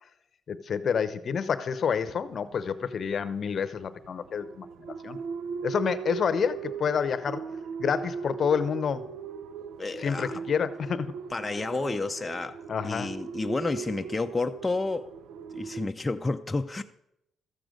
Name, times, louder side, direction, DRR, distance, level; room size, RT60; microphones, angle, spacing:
voice 1, 0.5-5.2 5.6-7.4 7.8-9.1 10.0-11.2 12.7-13.1, left 7 dB, 50° left, 0.7 m, -28 dB
sound 1, 1.9-15.9, right 6 dB, 85° right, 0.4 m, -39 dB
voice 2, 9.8-10.4 11.3-15.1 15.5-16.8, left 3 dB, 20° left, 0.5 m, -31 dB
13.0 x 7.7 x 5.1 m
cardioid pair, 90°, 0 cm